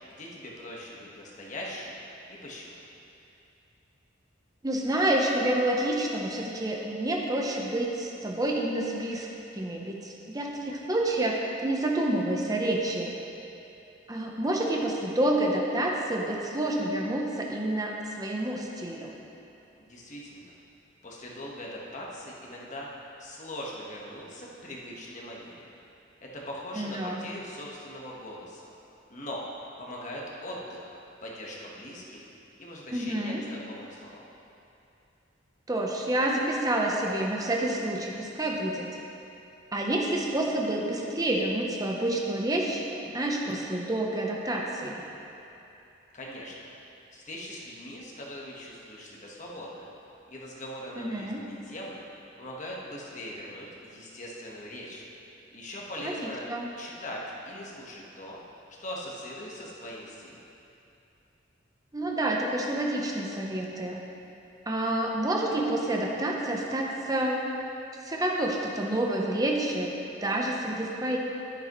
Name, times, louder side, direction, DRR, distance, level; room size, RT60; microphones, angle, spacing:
voice 1, 0.0-2.0 2.3-2.8 19.8-20.5 21.0-22.9 23.2-25.7 26.2-28.7 29.1-29.4 29.8-30.9 31.2-32.2 32.6-34.2 46.1-46.5 47.1-49.9 50.3-52.0 52.4-55.0 55.5-56.5 56.8-58.4 58.8-60.4, left 1 dB, 40° left, -4 dB, 1.4 m, -41 dB
voice 2, 4.6-9.3 9.5-13.2 14.1-19.1 26.7-27.2 32.9-33.4 35.7-38.9 39.7-42.9 43.1-45.0 51.0-51.4 56.0-56.7 61.9-64.0 64.7-67.4 68.0-69.9 70.2-71.2, right 1 dB, 20° right, -1 dB, 0.8 m, -28 dB
11.0 x 10.0 x 3.1 m, 2.8 s
head